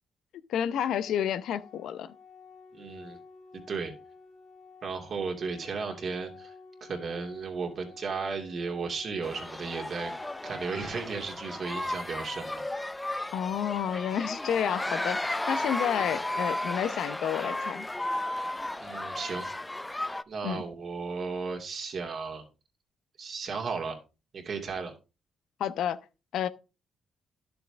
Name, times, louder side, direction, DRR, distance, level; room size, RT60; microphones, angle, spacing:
voice 1, 0.5-2.1 13.3-17.9 20.4-20.6 25.6-26.0 26.3-26.5, left 9 dB, 75° left, 0.7 m, -30 dB
Organ, 0.9-11.9, left 4 dB, 60° left, 2.7 m, -53 dB
voice 2, 2.7-3.2 3.5-3.9 4.8-6.5 6.8-12.6 16.0-16.1 18.8-19.5 20.3-22.4 23.2-24.0 24.3-24.9, right 4 dB, 50° right, 2.5 m, -35 dB
sound 1, 9.2-20.2, left 1 dB, 10° left, 0.5 m, -34 dB
11.0 x 6.9 x 3.5 m
cardioid pair, 90°, 0 cm